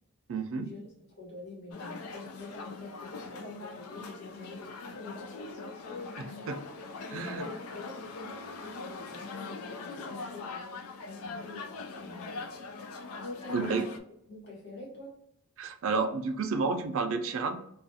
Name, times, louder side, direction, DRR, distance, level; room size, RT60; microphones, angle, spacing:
voice 1, 0.3-0.7 6.5-6.6 7.1-7.5 13.5-13.9 15.6-17.6, right 4 dB, 65° right, 6 dB, 0.4 m, -30 dB
voice 2, 1.2-6.5 7.1-12.5 13.4-13.9 14.3-15.2, left 2 dB, 55° left, -3 dB, 1.1 m, -46 dB
sound 1, 1.7-14.0, left 4 dB, 85° left, 0.4 m, -42 dB
2.4 x 2.2 x 2.7 m, 0.72 s
head